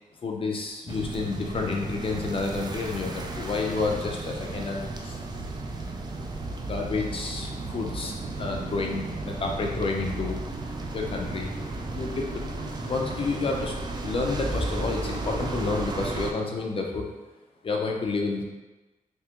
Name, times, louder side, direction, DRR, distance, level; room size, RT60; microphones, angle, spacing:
voice 1, 0.2-5.2 6.5-10.4 10.9-11.5 11.9-12.4 12.8-17.0 17.6-18.4, left 3 dB, 40° left, 1 dB, 0.5 m, -30 dB
sound 1, 0.9-16.3, right 2 dB, 30° right, 0.3 m, -34 dB
3.5 x 2.9 x 2.9 m, 1.1 s
wide cardioid pair, 145°, 15 cm